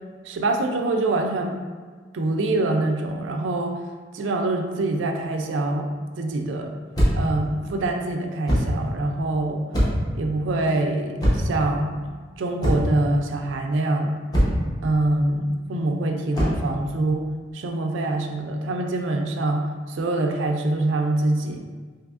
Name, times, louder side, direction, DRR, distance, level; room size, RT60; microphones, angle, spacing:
voice 1, 0.3-1.5 2.1-3.8 4.1-6.7 7.2-9.6 10.1-12.0 12.4-14.1 14.8-17.3 17.5-21.6, right 2 dB, 85° right, 4 dB, 0.4 m, -25 dB
sound 1, 6.9-7.4 8.5-8.8 9.7-10.1 11.2-11.6 12.6-13.0 14.3-14.7 16.3-16.7, equal, 20° left, 0.7 m, -21 dB
3.4 x 2.8 x 2.4 m, 1.5 s
head